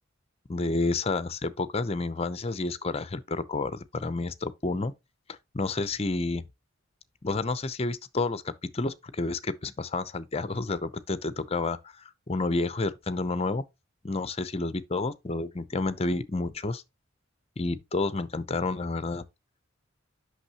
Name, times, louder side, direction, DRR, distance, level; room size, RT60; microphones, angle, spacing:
voice 1, 0.5-4.9 5.5-6.4 7.2-11.8 12.3-13.6 14.0-16.8 17.6-19.2, left 3 dB, 30° left, 0.6 m, -30 dB
8.4 x 6.2 x 2.9 m
head